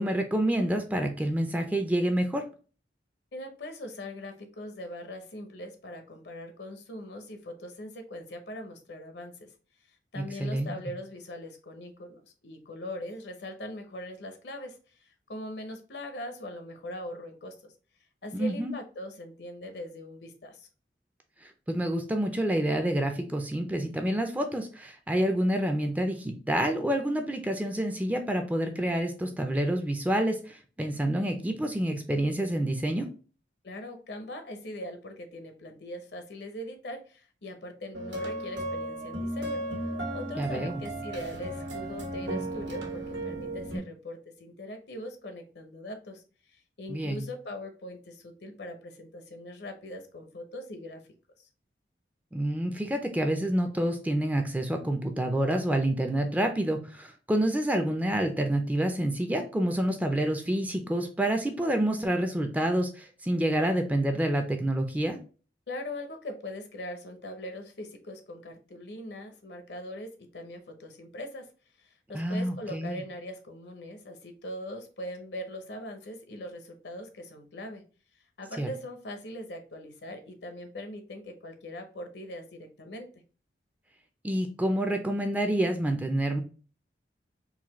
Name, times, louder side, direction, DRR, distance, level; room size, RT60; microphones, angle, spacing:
voice 1, 0.0-2.4 10.2-10.7 18.3-18.7 21.4-33.1 40.4-40.8 46.9-47.3 52.3-65.2 72.1-73.0 78.6-78.7 84.2-86.4, right 1 dB, 10° right, 5 dB, 0.4 m, -28 dB
voice 2, 3.3-9.5 9.9-17.7 18.2-20.7 33.6-51.0 51.4-51.5 65.7-71.5 71.8-77.8 78.4-83.1, left 1 dB, 70° left, 6 dB, 0.7 m, -41 dB
sound 1, 37.9-43.8, right 1 dB, 85° right, 1.3 m, -35 dB
4.0 x 2.6 x 2.9 m, 0.37 s
head